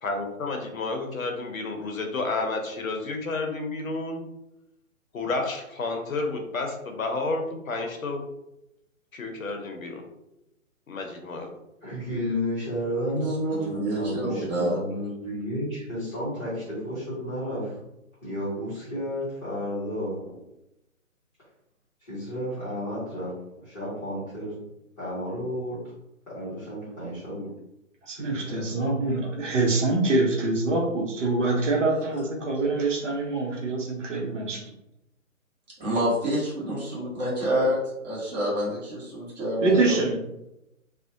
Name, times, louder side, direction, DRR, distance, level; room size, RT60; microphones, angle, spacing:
voice 1, 0.0-4.2 5.1-8.2 9.1-10.0 10.9-11.5, left 3 dB, 75° left, 3 dB, 0.7 m, -31 dB
voice 2, 11.8-17.8 18.2-20.3 22.0-23.3 23.6-24.5 25.0-25.8 26.3-27.5 28.2-28.8, equal, 10° left, -12 dB, 0.7 m, -32 dB
voice 3, 13.5-14.8 35.8-37.8 38.0-39.9, equal, 30° right, -7 dB, 1.0 m, -27 dB
voice 4, 28.1-34.6 39.6-40.2, right 2 dB, 60° right, -1 dB, 0.8 m, -25 dB
2.5 x 2.1 x 2.6 m, 0.89 s
figure-of-eight pair, 135°, 41 cm